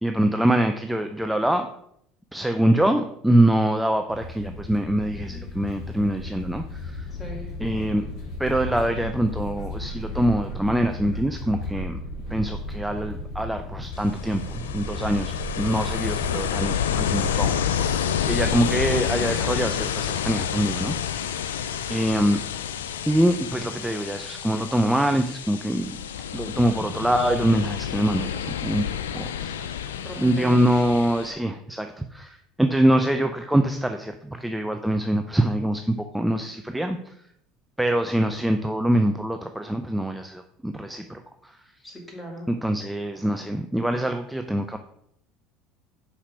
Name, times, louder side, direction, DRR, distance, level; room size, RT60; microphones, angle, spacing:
voice 1, 0.0-1.7 2.3-7.1 7.6-8.0 8.4-12.0 12.3-18.0 18.3-21.0 21.9-22.4 23.1-26.0 26.3-28.8 29.1-29.7 30.2-37.0 37.8-41.5 42.5-44.8, right 1 dB, 5° right, 6 dB, 0.5 m, -24 dB
sound 1, 4.1-19.0, left 2 dB, 50° left, 2.1 m, -35 dB
voice 2, 7.1-7.5 29.9-30.7 41.8-42.5, equal, 15° left, 0 dB, 2.4 m, -37 dB
Ocean, 13.9-31.3, left 9 dB, 85° left, 0.4 m, -29 dB
5.9 x 4.3 x 5.1 m, 0.72 s
hypercardioid pair, 75°, 0 cm